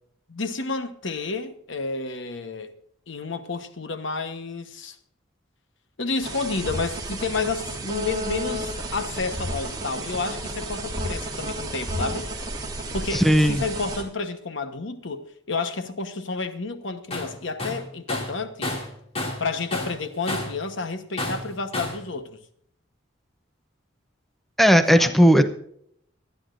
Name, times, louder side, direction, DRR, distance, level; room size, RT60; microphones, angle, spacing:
voice 1, 0.3-2.7 3.1-5.0 6.0-12.3 12.9-18.8 19.4-22.4 24.9-25.3, left 3 dB, 65° left, 1.1 m, -30 dB
sound 1, 6.2-14.0, right 1 dB, 20° right, 2.1 m, -32 dB
voice 2, 13.1-13.6 24.6-25.4, equal, ahead, 0.6 m, -16 dB
Tools, 17.1-17.3 17.6-19.5 19.7-20.6 21.2-22.0, left 2 dB, 30° left, 2.5 m, -30 dB
23.5 x 9.8 x 2.6 m
head